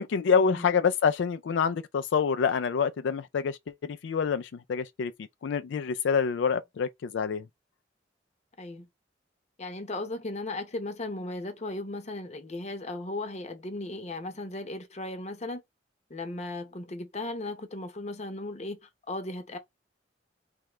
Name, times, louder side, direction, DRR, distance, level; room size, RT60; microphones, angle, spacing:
voice 1, 0.0-5.1 5.4-7.4, left 6 dB, 90° left, 0.4 m, -27 dB
voice 2, 9.6-15.6 16.1-19.6, left 2 dB, 40° left, 0.8 m, -36 dB
3.6 x 3.2 x 3.0 m
head